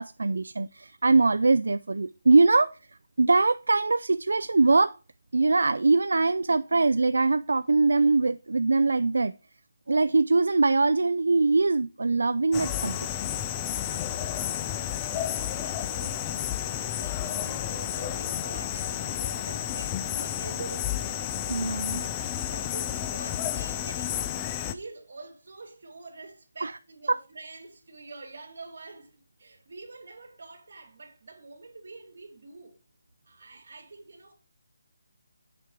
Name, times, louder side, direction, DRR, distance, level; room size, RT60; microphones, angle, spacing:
voice 1, 0.0-2.7 3.2-4.9 5.3-9.3 9.9-13.1 21.5-22.0 26.6-26.7 27.1-27.2, right 3 dB, 80° right, 0.3 m, -22 dB
sound 1, 12.5-24.7, left 11 dB, 15° left, 0.4 m, -31 dB
voice 2, 13.5-21.0 21.8-24.4 24.6-29.1 29.4-32.7 33.2-34.3, right 3 dB, 60° right, 2.5 m, -46 dB
7.4 x 5.2 x 4.7 m
hypercardioid pair, 170°, 0 cm